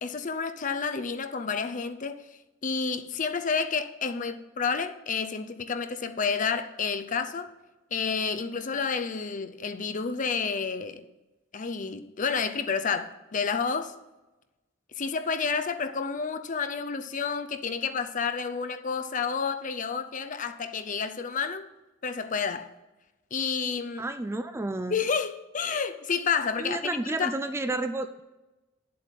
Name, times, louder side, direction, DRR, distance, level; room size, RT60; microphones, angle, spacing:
voice 1, 0.0-2.3 2.6-7.5 7.9-11.0 11.5-13.9 15.0-21.7 22.0-22.7 23.3-24.1 24.9-27.3, left 5 dB, 40° left, 0.6 m, -30 dB
voice 2, 24.0-25.0 26.6-28.2, right 2 dB, 15° right, 0.3 m, -31 dB
9.2 x 7.7 x 5.2 m
head